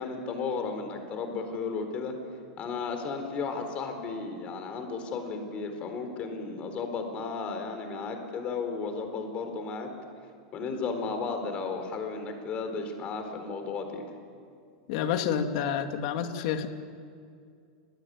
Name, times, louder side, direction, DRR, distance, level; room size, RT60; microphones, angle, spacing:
voice 1, 0.0-2.2 2.6-9.9 10.5-14.0, left 4 dB, 30° left, 6 dB, 4.3 m, -34 dB
voice 2, 14.9-16.7, left 8 dB, 55° left, 6 dB, 2.5 m, -29 dB
29.0 x 20.5 x 9.6 m, 2.3 s
supercardioid pair, 155°, 4 cm